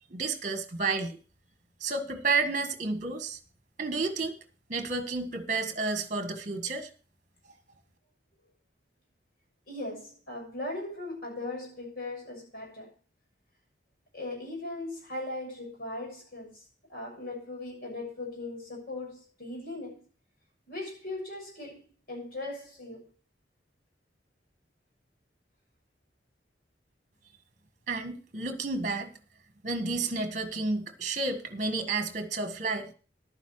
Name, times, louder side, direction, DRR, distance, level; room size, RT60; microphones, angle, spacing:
voice 1, 0.1-1.2 1.8-3.4 3.8-4.4 4.7-6.9 27.9-29.1 29.6-32.9, right 3 dB, 45° right, 1.5 m, -31 dB
voice 2, 9.7-12.9 14.1-16.6 16.9-20.0 20.7-23.1, left 2 dB, 55° left, 6.8 m, -39 dB
11.5 x 9.5 x 4.7 m
head